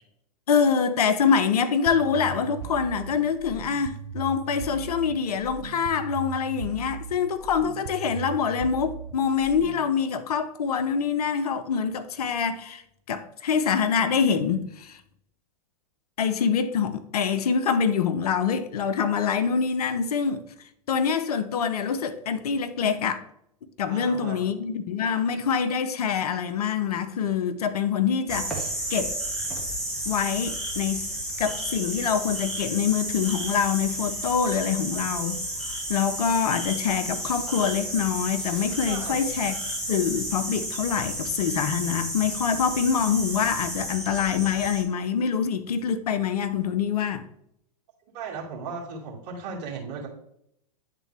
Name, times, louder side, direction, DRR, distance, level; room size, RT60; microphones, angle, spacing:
voice 1, 0.5-12.8 13.1-15.0 16.2-20.5 20.9-23.2 23.8-29.2 30.1-31.1 31.4-35.4 35.7-47.2, left 7 dB, 65° left, 0.7 m, -25 dB
sound 1, 1.9-9.9, right 8 dB, 70° right, 0.7 m, -39 dB
voice 2, 23.9-24.5 38.9-39.3 48.1-50.1, right 5 dB, 45° right, 2.3 m, -36 dB
Frogs Crickets and Mosquitoes, 28.3-44.8, right 1 dB, 5° left, 1.6 m, -32 dB
9.9 x 3.7 x 3.3 m
figure-of-eight pair, 105°, 21 cm